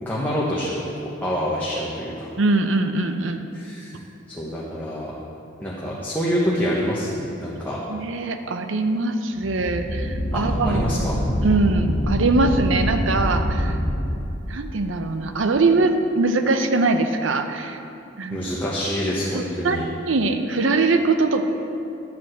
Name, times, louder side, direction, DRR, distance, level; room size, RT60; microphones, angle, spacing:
voice 1, 0.0-0.7 1.2-2.3 3.5-4.0 4.3-5.1 5.6-7.8 10.3-11.2 18.3-19.8, equal, 10° left, -7 dB, 1.2 m, -26 dB
voice 2, 2.4-3.4 7.9-10.8 11.4-13.8 14.5-17.8 18.2-18.4 19.3-21.4, right 3 dB, 75° right, 7 dB, 0.7 m, -22 dB
sound 1, 9.4-14.2, equal, 60° left, 1.3 m, -25 dB
10.5 x 5.3 x 7.6 m, 2.8 s
head